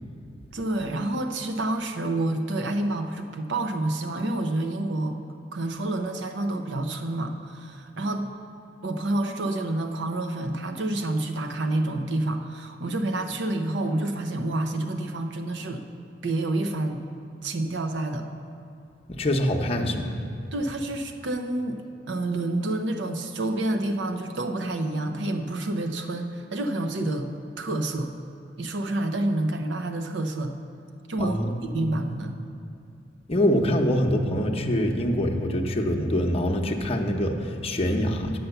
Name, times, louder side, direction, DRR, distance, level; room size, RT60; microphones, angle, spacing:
voice 1, 0.5-5.2 5.5-8.3 8.8-15.8 16.2-17.0 17.4-18.3 20.5-21.8 22.1-27.3 27.6-28.1 28.6-30.5 31.1-32.3, right 2 dB, 75° right, 5 dB, 0.7 m, -28 dB
voice 2, 19.1-20.1 31.2-32.0 33.3-38.4, equal, 35° left, 2 dB, 0.8 m, -25 dB
9.3 x 5.7 x 7.9 m, 2.6 s
head